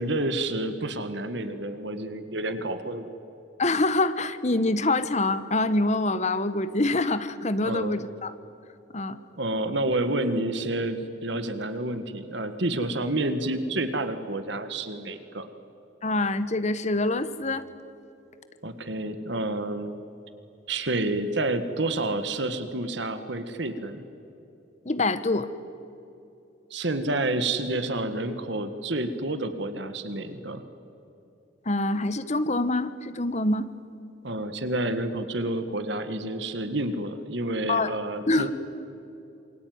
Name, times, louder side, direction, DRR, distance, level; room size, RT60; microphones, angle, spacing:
voice 1, 0.0-3.1 7.6-8.0 9.4-15.5 18.6-20.0 20.7-24.0 26.7-30.6 34.2-38.5, right 2 dB, 60° right, 9 dB, 1.7 m, -29 dB
voice 2, 3.6-8.3 8.9-9.2 16.0-17.6 24.8-25.5 31.6-33.7 37.7-37.9 38.3-38.5, left 2 dB, 35° left, 12 dB, 1.1 m, -25 dB
27.5 x 23.0 x 9.5 m, 2.8 s
head